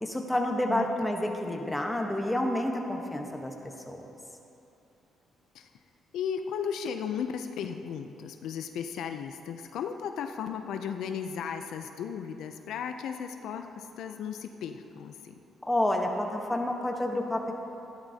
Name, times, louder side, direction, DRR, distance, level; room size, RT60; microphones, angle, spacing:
voice 1, 0.0-3.5 3.9-4.0 15.6-17.5, left 1 dB, 10° left, 2 dB, 1.1 m, -29 dB
voice 2, 6.1-15.3, left 7 dB, 80° left, 7 dB, 0.5 m, -35 dB
13.5 x 11.0 x 2.8 m, 2.9 s
cardioid pair, 90°, 0 cm